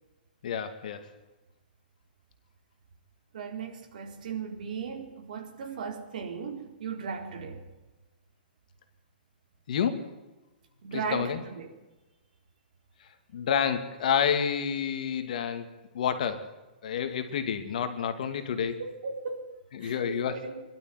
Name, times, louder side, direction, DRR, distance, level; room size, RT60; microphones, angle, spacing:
voice 1, 0.4-1.1 9.7-10.1 10.9-11.4 13.3-16.5 16.8-18.8 19.7-20.4, left 7 dB, 50° left, 2.5 m, -29 dB
voice 2, 3.3-7.6 10.8-11.7 18.6-19.5 19.8-20.0 20.3-20.6, right 5 dB, 55° right, 4.2 m, -37 dB
25.5 x 12.5 x 9.5 m
hypercardioid pair, 170°, 5 cm